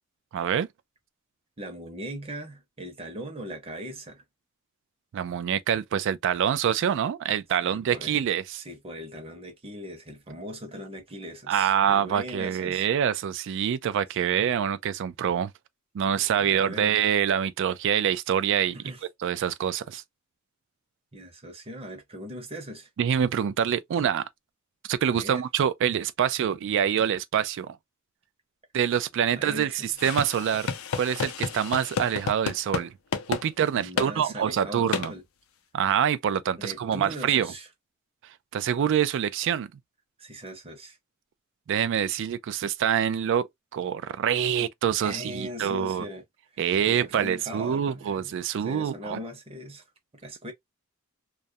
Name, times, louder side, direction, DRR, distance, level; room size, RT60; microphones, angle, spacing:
voice 1, 0.3-0.7 5.1-8.6 11.5-15.5 15.9-18.8 19.2-20.0 23.0-24.2 24.9-27.8 28.7-32.9 33.3-35.1 35.7-37.5 38.5-39.7 41.7-46.1 46.6-49.2, right 8 dB, 60° right, 0.3 m, -26 dB
voice 2, 1.6-4.2 7.6-8.2 8.6-12.9 16.1-17.0 18.7-19.0 21.1-22.9 25.0-25.4 29.3-30.0 33.8-35.2 36.6-37.7 40.2-41.0 44.6-44.7 45.0-46.2 46.9-48.3 48.6-49.8 50.2-50.5, equal, 30° right, 0.8 m, -39 dB
sound 1, 30.0-32.9 33.1-33.4 34.0-34.1 34.9-35.1, left 6 dB, 75° left, 0.5 m, -30 dB
2.3 x 2.1 x 2.6 m
head